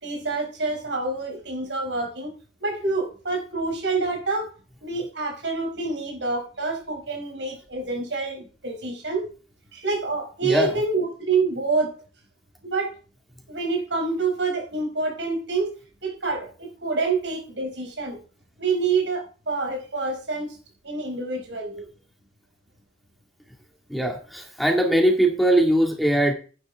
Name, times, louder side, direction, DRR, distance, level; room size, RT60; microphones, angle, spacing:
voice 1, 0.0-2.3 2.6-4.5 4.8-9.3 9.7-11.9 12.6-12.9 13.5-15.7 16.0-18.2 18.6-20.6 20.8-21.9, right 3 dB, 80° right, 2 dB, 4.9 m, -27 dB
voice 2, 10.4-10.8 23.9-26.3, right 1 dB, ahead, 1 dB, 2.2 m, -21 dB
11.5 x 9.9 x 3.6 m, 0.38 s
head